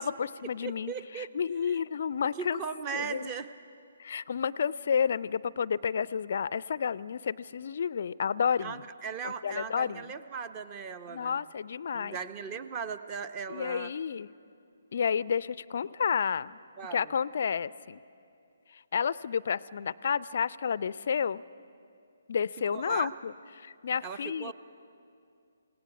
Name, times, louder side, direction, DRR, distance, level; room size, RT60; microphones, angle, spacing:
voice 1, 0.0-2.6 2.9-3.3 4.0-8.8 9.2-10.1 11.1-12.2 13.5-14.3 14.9-16.6 16.9-18.0 18.7-21.4 22.3-24.5, left 7 dB, 50° left, 20 dB, 0.4 m, -31 dB
voice 2, 0.6-1.3 1.7-1.8 2.4-3.5 8.6-11.4 11.9-13.9 16.8-17.1 22.7-23.1 24.0-24.5, right 6 dB, 25° right, 12 dB, 0.8 m, -38 dB
27.5 x 17.5 x 5.8 m, 2.5 s
figure-of-eight pair, 135°, 0 cm